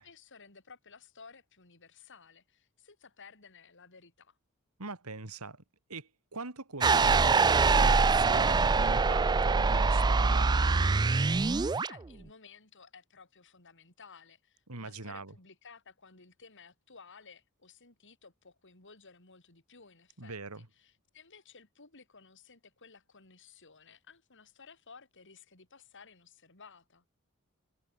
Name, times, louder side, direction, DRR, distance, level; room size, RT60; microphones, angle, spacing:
voice 1, 0.0-4.4 11.8-27.0, left 5 dB, 60° left, 5.0 m, -56 dB
voice 2, 4.8-5.6 5.9-10.5 14.7-15.3 20.2-20.7, right 3 dB, 85° right, 2.8 m, -42 dB
sound 1, 6.8-11.9, right 4 dB, 20° right, 0.4 m, -24 dB
head